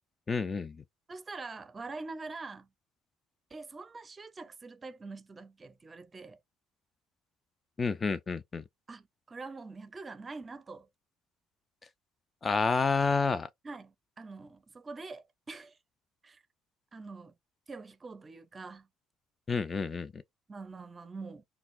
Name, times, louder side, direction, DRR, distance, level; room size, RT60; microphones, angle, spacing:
voice 1, 0.3-0.8 7.8-8.6 12.4-13.5 19.5-20.2, left 4 dB, 30° left, 0.3 m, -29 dB
voice 2, 1.1-2.7 3.5-6.4 8.9-10.9 13.6-15.8 16.2-16.4 16.9-17.3 17.7-18.9 20.5-21.4, right 3 dB, 30° right, 0.5 m, -44 dB
3.9 x 2.2 x 2.5 m
supercardioid pair, 85°, 0 cm